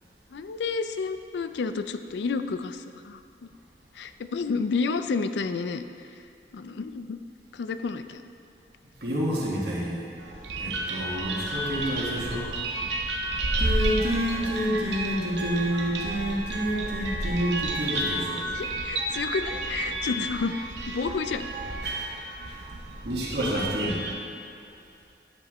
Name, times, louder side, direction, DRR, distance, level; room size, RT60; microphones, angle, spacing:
voice 1, 0.3-3.5 3.9-5.8 6.5-7.2 7.5-8.2 10.7-10.8 18.5-20.6 20.9-21.5, left 4 dB, 80° left, 10 dB, 0.4 m, -30 dB
voice 2, 9.0-10.1 10.6-12.5 13.6-18.5 21.8-22.1 22.4-22.6 23.0-24.0, equal, 70° right, -5 dB, 1.7 m, -29 dB
sound 1, 10.2-24.1, right 2 dB, 85° right, 0.8 m, -31 dB
10.5 x 7.3 x 3.1 m, 2.5 s
head